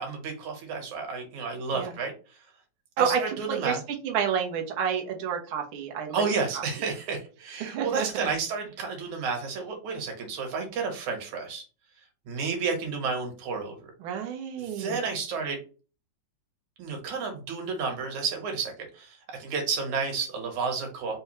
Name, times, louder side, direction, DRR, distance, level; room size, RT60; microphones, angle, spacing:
voice 1, 0.0-2.5 3.0-3.8 6.1-11.6 12.3-13.9 14.6-15.6 16.8-21.2, right 5 dB, 65° right, 2 dB, 2.5 m, -31 dB
voice 2, 3.0-6.2 6.5-6.6 7.6-8.3 14.0-15.0, right 7 dB, 80° right, 2 dB, 1.1 m, -29 dB
5.2 x 2.3 x 4.2 m, 0.35 s
omnidirectional pair, 3.8 m